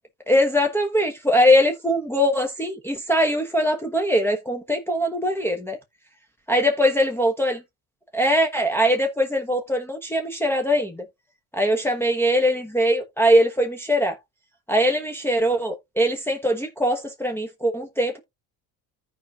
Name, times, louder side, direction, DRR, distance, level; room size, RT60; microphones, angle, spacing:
voice 1, 0.3-5.8 6.5-7.6 8.1-11.0 11.5-14.2 14.7-18.2, equal, 5° left, 1.1 m, -21 dB
14.0 x 4.9 x 2.4 m
cardioid pair, 100°, 44 cm